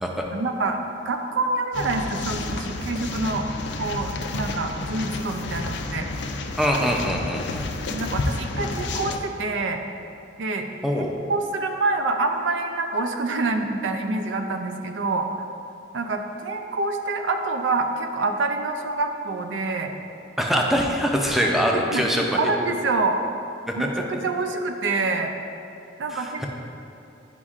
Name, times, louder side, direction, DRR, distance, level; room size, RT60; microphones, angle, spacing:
voice 1, 0.3-3.5 3.8-6.1 7.9-9.8 10.4-10.7 11.3-15.3 15.9-19.9 21.7-22.0 22.3-23.2 23.8-25.3 26.0-26.4, right 3 dB, 85° right, 5 dB, 0.5 m, -26 dB
sound 1, 1.7-9.2, left 3 dB, 65° left, 0.4 m, -30 dB
voice 2, 6.6-7.7 10.8-11.1 20.4-22.2 23.8-23.9 26.1-26.5, equal, ahead, 0 dB, 0.5 m, -23 dB
9.7 x 5.2 x 2.4 m, 2.8 s
head